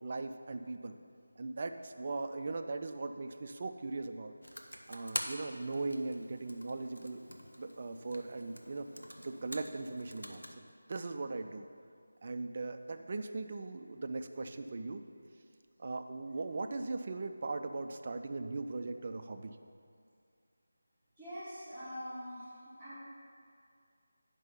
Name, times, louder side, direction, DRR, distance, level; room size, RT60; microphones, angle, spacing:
voice 1, 0.0-1.0 1.4-4.3 4.9-7.2 7.6-8.9 9.2-10.4 10.9-11.7 12.2-15.0 15.8-19.6, right 3 dB, 35° right, 7 dB, 0.4 m, -39 dB
Computer keyboard, 4.4-10.5, equal, 85° left, 0.8 m, -45 dB
voice 2, 21.2-22.5 22.8-23.0, equal, 10° left, -16 dB, 1.7 m, -43 dB
9.5 x 5.3 x 5.6 m, 2.3 s
figure-of-eight pair, 160°, 0 cm